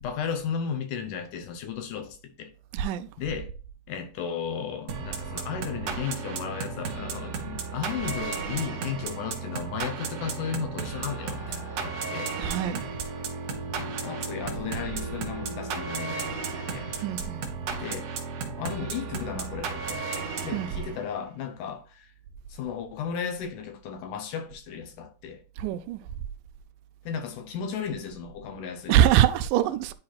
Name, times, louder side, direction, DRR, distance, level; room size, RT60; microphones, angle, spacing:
voice 1, 0.0-2.5 3.2-3.5 3.9-12.3 13.8-16.9 17.7-18.1 18.6-22.1 22.5-25.4 27.1-29.0, left 7 dB, 75° left, 2.3 m, -35 dB
voice 2, 2.7-3.1 12.4-12.8 17.0-17.4 20.5-20.7 25.6-26.0 28.9-30.0, right 11 dB, 85° right, 2.2 m, -23 dB
sound 1, 4.9-21.2, right 5 dB, 60° right, 1.9 m, -34 dB
sound 2, 10.9-17.1, left 1 dB, 55° left, 2.2 m, -43 dB
10.5 x 4.4 x 2.3 m
omnidirectional pair, 3.8 m